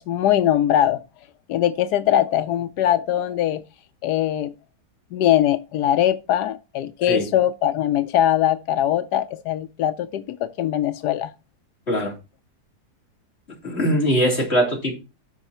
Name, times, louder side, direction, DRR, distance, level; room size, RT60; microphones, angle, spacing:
voice 1, 0.1-1.0 1.5-3.6 4.0-4.5 5.1-11.3, left 11 dB, 90° left, 1.2 m, -21 dB
voice 2, 13.6-14.9, equal, 40° left, 3.7 m, -21 dB
13.5 x 4.7 x 4.2 m
omnidirectional pair, 1.7 m